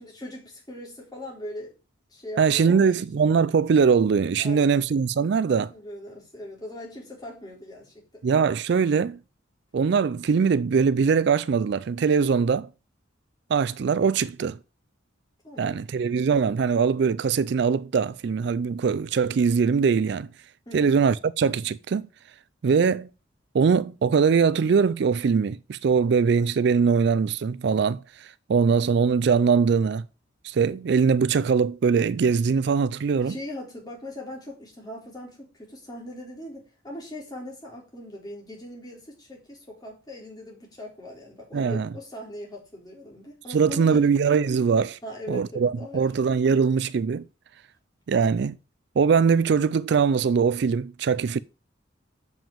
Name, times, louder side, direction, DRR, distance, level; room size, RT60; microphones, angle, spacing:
voice 1, 0.0-1.8 2.1-3.0 4.4-4.8 5.7-8.2 15.4-15.8 20.7-21.0 33.2-44.1 45.0-46.1, left 1 dB, 20° left, 4.0 m, -40 dB
voice 2, 2.4-5.7 8.2-9.2 9.7-12.7 13.5-14.6 15.6-20.3 20.7-22.1 22.6-23.1 23.5-30.0 30.4-33.3 41.5-41.9 43.5-45.0 45.3-47.2 48.1-48.6 49.0-51.4, right 5 dB, 60° right, 0.4 m, -22 dB
7.2 x 5.8 x 7.3 m
head